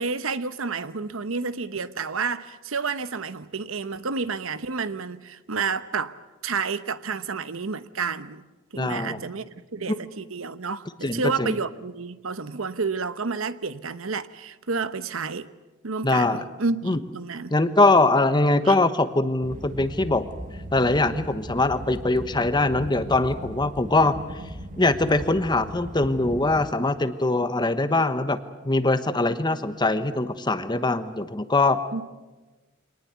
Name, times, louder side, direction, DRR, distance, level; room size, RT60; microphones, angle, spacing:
voice 1, 0.0-6.2 6.4-8.4 8.7-15.5 15.8-17.5 18.7-18.8 25.2-25.3 31.9-32.0, right 4 dB, 85° right, 1.0 m, -30 dB
voice 2, 8.8-9.2 9.9-10.0 11.0-11.5 16.0-16.4 16.8-17.0 17.5-20.3 20.7-24.2 24.8-28.4 28.6-31.8, left 2 dB, 20° left, 1.1 m, -22 dB
sound 1, 19.4-26.7, equal, 40° right, 1.8 m, -38 dB
25.0 x 19.5 x 8.2 m
head